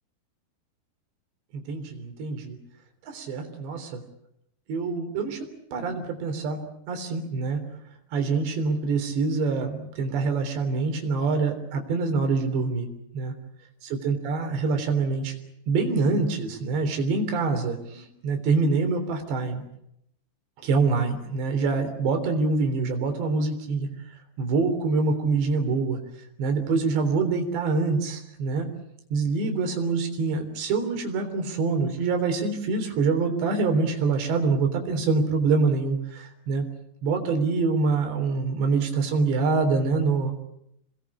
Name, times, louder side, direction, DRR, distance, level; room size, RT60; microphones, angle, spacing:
voice 1, 1.7-2.6 3.1-4.0 4.7-5.4 5.7-6.6 6.9-7.6 8.1-12.9 13.1-13.3 14.0-15.4 15.7-19.6 20.6-23.9 24.4-26.0 26.4-28.7 29.1-36.7 37.0-40.3, right 4 dB, 85° right, 5 dB, 5.8 m, -25 dB
28.0 x 21.0 x 8.5 m, 0.77 s
omnidirectional pair, 4.9 m